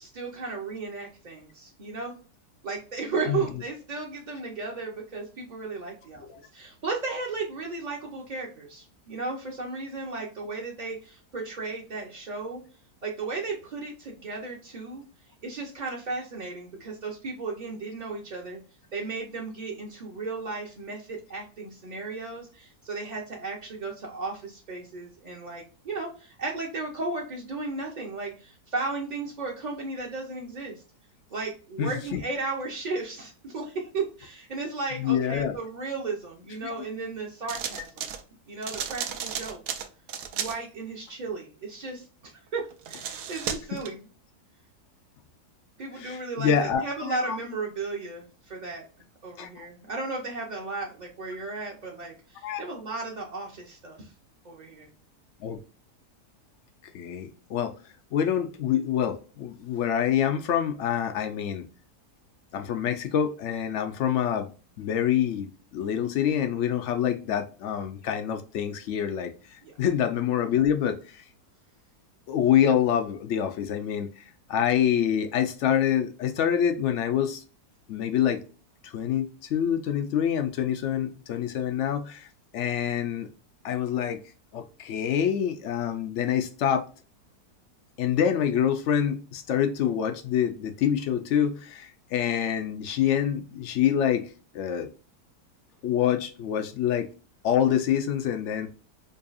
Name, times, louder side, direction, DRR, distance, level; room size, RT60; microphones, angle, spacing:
voice 1, 0.0-2.2 2.6-6.3 6.5-12.6 13.0-15.0 15.4-18.6 18.9-30.7 31.3-38.1 38.5-39.8 40.3-44.0 45.8-48.8 49.2-54.1 54.4-54.9 69.6-69.7, right 3 dB, 45° right, 0.6 m, -35 dB
voice 2, 31.8-32.2 35.0-35.6 36.6-36.8 43.7-43.8 46.0-47.4 49.4-49.7 52.4-52.6 55.4-55.6 56.9-57.7 58.1-61.7 62.5-64.5 64.8-71.2 72.3-74.2 74.5-77.4 77.9-78.4 78.8-82.3 82.5-83.3 83.6-84.2 84.5-86.9 88.0-94.9 95.8-97.1 97.4-98.7, left 9 dB, 75° left, 0.6 m, -26 dB
sound 1, 37.5-38.2 38.6-40.6 42.7-43.9, right 8 dB, 80° right, 1.1 m, -34 dB
5.2 x 2.3 x 2.4 m
omnidirectional pair, 1.7 m